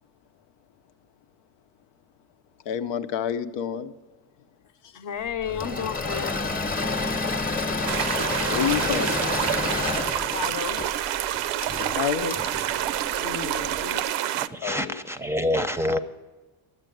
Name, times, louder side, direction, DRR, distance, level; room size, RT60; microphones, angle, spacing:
voice 1, 2.7-3.9 8.5-9.1 11.7-12.4 14.6-15.0, left 9 dB, 90° left, 0.8 m, -28 dB
voice 2, 4.9-6.5 10.3-10.8 13.2-14.0, left 8 dB, 50° left, 0.9 m, -33 dB
Engine / Mechanisms, 5.4-13.8, left 3 dB, 20° left, 0.9 m, -29 dB
sound 1, 7.9-14.5, right 12 dB, 90° right, 0.6 m, -28 dB
voice 3, 14.4-16.0, left 1 dB, 5° right, 0.6 m, -26 dB
11.0 x 8.2 x 9.1 m
cardioid pair, 110°, 41 cm